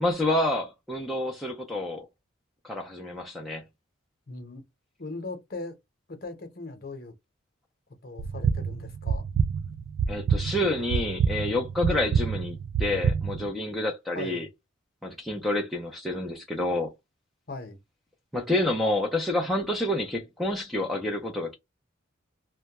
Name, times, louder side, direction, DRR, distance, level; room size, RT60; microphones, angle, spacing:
voice 1, 0.0-2.0 2.6-3.6 10.1-14.5 15.0-16.9 18.3-21.6, left 1 dB, ahead, 0.5 m, -28 dB
voice 2, 4.3-4.6 5.0-5.8 6.1-7.1 8.0-9.2 14.1-14.5 17.5-17.8, left 3 dB, 50° left, 0.8 m, -39 dB
sound 1, 8.2-13.5, right 6 dB, 75° right, 0.3 m, -27 dB
2.2 x 2.1 x 2.8 m
head